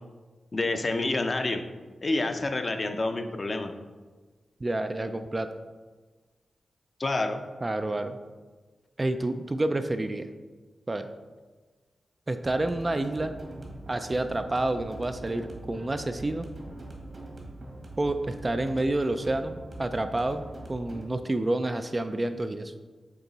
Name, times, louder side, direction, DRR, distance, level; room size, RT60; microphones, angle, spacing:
voice 1, 0.5-1.6 2.0-3.7 7.0-7.4, left 2 dB, 35° left, 6 dB, 0.5 m, -28 dB
voice 2, 4.6-5.5 7.6-8.2 9.0-10.3 10.9-11.1 12.3-13.3 13.9-16.5 18.0-22.7, right 2 dB, 25° right, 8 dB, 0.3 m, -29 dB
sound 1, 12.4-21.1, right 2 dB, 50° right, 1.4 m, -43 dB
8.1 x 2.9 x 4.0 m, 1.3 s
wide cardioid pair, 100°, 0 cm